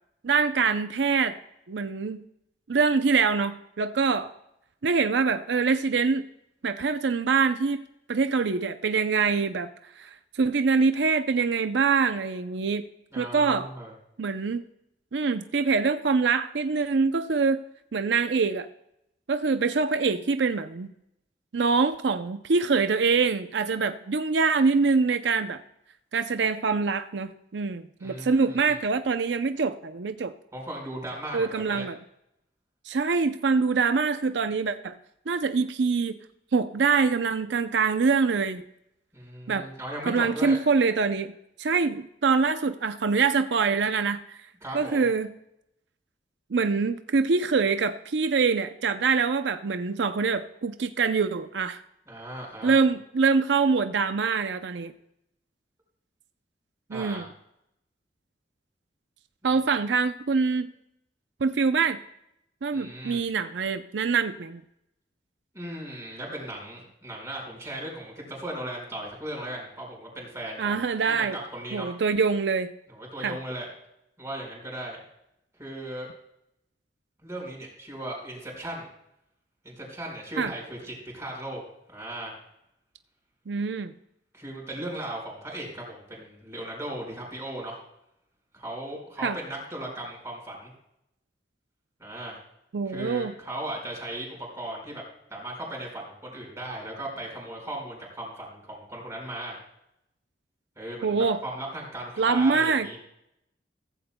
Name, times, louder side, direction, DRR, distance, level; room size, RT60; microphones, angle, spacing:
voice 1, 0.2-1.4 1.7-2.2 2.7-4.3 4.8-6.3 6.6-7.8 8.1-9.7 10.0-10.1 10.3-12.8 13.2-13.7 14.2-14.6 15.1-17.6 17.9-18.7 19.3-20.9 21.5-25.6 26.1-30.3 31.3-32.0 32.9-35.0 35.3-36.2 36.5-38.7 39.5-39.7 40.1-41.3 41.6-44.4 44.7-45.3 46.5-51.8 52.6-54.9 56.9-57.2 59.4-60.7 61.4-62.0 62.6-64.6 70.6-71.4 71.7-72.7 73.2-73.4 80.4-80.5 83.5-83.9 89.2-89.4 92.7-93.3 101.0-101.4 102.2-102.9, right 5 dB, 85° right, 9 dB, 0.6 m, -24 dB
voice 2, 13.1-13.9 28.0-28.8 30.5-31.8 39.1-40.6 44.6-45.1 52.1-52.8 56.9-57.3 59.4-59.5 62.7-63.2 65.5-70.8 71.1-71.9 72.9-73.7 74.2-75.0 75.6-76.1 77.2-78.9 79.6-81.6 81.9-82.3 84.3-87.8 88.5-90.7 92.0-92.4 92.8-95.0 95.3-99.6 100.8-103.0, right 1 dB, 15° right, -1 dB, 4.9 m, -37 dB
16.0 x 14.5 x 2.2 m, 0.81 s
head